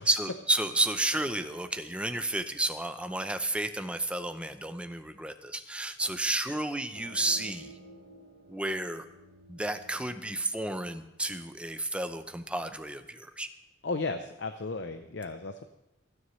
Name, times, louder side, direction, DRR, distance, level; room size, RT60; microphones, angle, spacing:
voice 1, 0.0-7.7 8.5-9.1 9.5-13.5, right 2 dB, 5° right, 9 dB, 0.6 m, -31 dB
sound 1, 6.9-12.3, equal, 35° right, 3.4 m, -53 dB
voice 2, 13.8-15.6, left 3 dB, 65° left, 7 dB, 0.7 m, -34 dB
28.0 x 9.7 x 3.2 m, 0.91 s
head